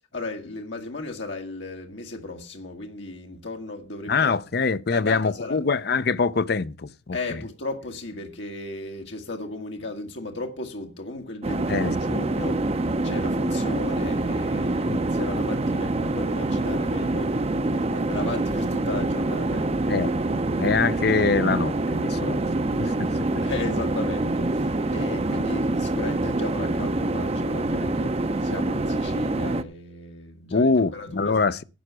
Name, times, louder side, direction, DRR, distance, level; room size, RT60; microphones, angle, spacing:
voice 1, 0.1-4.3 4.9-5.6 7.1-17.4 17.7-19.9 23.4-31.6, left 2 dB, 80° left, 1.7 m, -35 dB
voice 2, 4.1-7.2 11.7-11.9 14.8-15.1 19.9-20.1 20.6-22.5 22.8-23.1 30.5-31.6, left 4 dB, 55° left, 0.6 m, -24 dB
sound 1, 11.4-29.6, right 2 dB, 35° right, 0.6 m, -25 dB
11.0 x 8.0 x 6.1 m
head